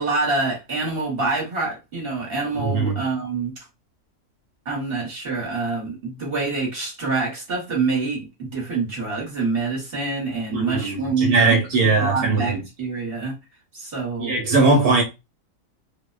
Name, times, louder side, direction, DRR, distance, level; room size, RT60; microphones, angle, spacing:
voice 1, 0.0-3.6 4.6-13.3 13.7-14.4, right 3 dB, 45° right, 1.1 m, -26 dB
voice 2, 2.5-3.0 10.5-12.6 14.2-15.0, right 3 dB, 80° right, 1.1 m, -20 dB
2.6 x 2.1 x 2.3 m
omnidirectional pair, 1.6 m